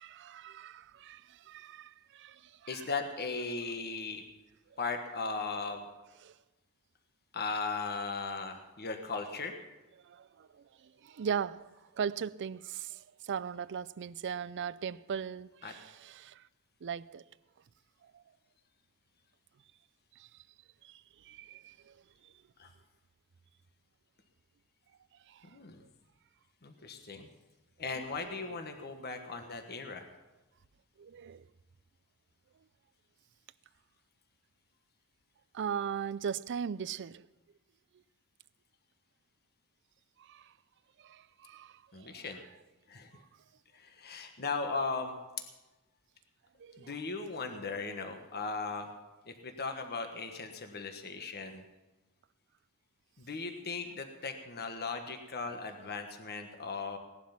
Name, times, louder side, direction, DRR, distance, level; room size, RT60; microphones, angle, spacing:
voice 1, 0.0-2.9 4.7-4.8 6.2-6.3 10.0-16.4 16.8-17.2 18.1-18.2 20.2-20.3 20.8-22.0 22.2-22.3 25.3-25.5 27.9-28.4 31.0-31.5 35.5-37.3 40.2-40.5 41.0-42.3 46.6-47.0, right 7 dB, 55° right, 0.4 m, -39 dB
voice 2, 2.7-4.2 4.8-5.8 7.3-9.5 15.6-15.7 22.6-22.7 25.5-25.8 26.6-27.3 27.8-30.1 41.9-42.4 42.9-43.1 43.7-45.1 46.8-48.9 49.3-51.6 53.2-57.0, left 4 dB, 45° left, 1.3 m, -37 dB
17.5 x 11.5 x 5.9 m
head